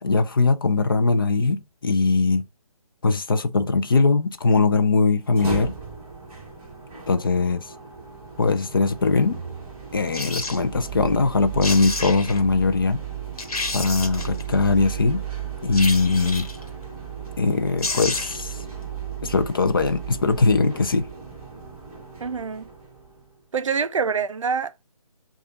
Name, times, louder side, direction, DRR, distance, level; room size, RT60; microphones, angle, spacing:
voice 1, 0.0-2.5 3.0-5.7 7.1-7.7 8.4-9.4 9.9-13.0 13.7-15.2 15.6-16.5 17.4-18.6 19.2-21.1, left 4 dB, 35° left, 0.4 m, -21 dB
sound 1, 5.2-23.3, right 7 dB, 10° right, 1.4 m, -35 dB
sound 2, 10.1-10.6 11.3-11.4 11.6-12.4 13.0-13.1 13.4-14.4 15.7-16.6 17.5-17.6 17.8-18.5 18.8-18.9, left 3 dB, 75° left, 1.1 m, -30 dB
voice 2, 22.2-22.7 23.5-24.9, right 6 dB, 55° right, 0.5 m, -26 dB
6.6 x 2.3 x 2.3 m
figure-of-eight pair, 160°, 19 cm